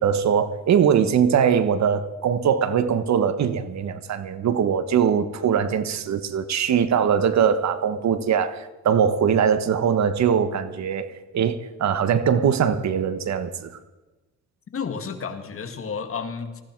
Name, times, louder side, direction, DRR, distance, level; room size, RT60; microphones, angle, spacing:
voice 1, 0.0-11.1 11.3-13.8, right 7 dB, 65° right, 12 dB, 1.4 m, -21 dB
voice 2, 14.7-16.6, left 5 dB, 45° left, 7 dB, 2.1 m, -31 dB
19.5 x 14.5 x 4.7 m, 1.1 s
cardioid pair, 90°, 30 cm